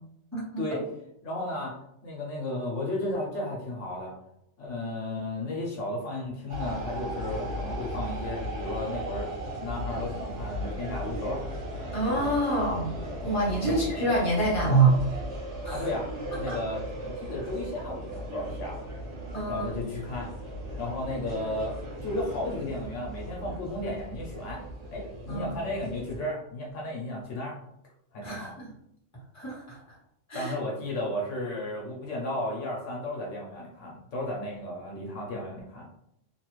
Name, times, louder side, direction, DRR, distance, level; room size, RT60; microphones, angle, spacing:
voice 1, 0.3-0.6 11.9-12.9 13.2-15.0 15.6-15.9 16.3-16.6 19.3-19.7 25.3-25.5 28.2-28.7 29.3-29.8 30.3-30.5, right 2 dB, 15° left, -6 dB, 1.1 m, -26 dB
voice 2, 1.2-1.8 2.0-4.1 4.6-9.3 9.6-11.4 13.7-13.8 15.7-16.8 17.1-18.8 19.5-20.3 20.8-21.8 22.0-27.6 28.1-28.6 30.3-35.9, left 1 dB, 75° left, -2 dB, 1.0 m, -34 dB
sound 1, 6.5-26.2, right 1 dB, 70° right, 1.2 m, -37 dB
2.8 x 2.3 x 3.0 m, 0.74 s
omnidirectional pair, 1.3 m